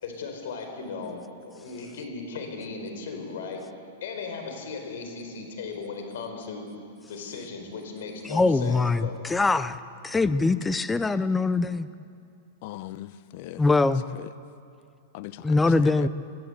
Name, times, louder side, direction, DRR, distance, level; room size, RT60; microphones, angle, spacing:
voice 1, 0.0-3.6 4.0-6.7 7.1-9.2, left 4 dB, 75° left, 4.7 m, -37 dB
voice 2, 8.3-9.7 10.0-11.9 13.6-14.0 15.4-16.1, left 3 dB, 10° left, 0.5 m, -22 dB
voice 3, 12.6-13.6 14.2-14.3 15.1-16.1, left 15 dB, 50° left, 0.7 m, -39 dB
23.0 x 14.0 x 8.1 m
supercardioid pair, 145°, 0 cm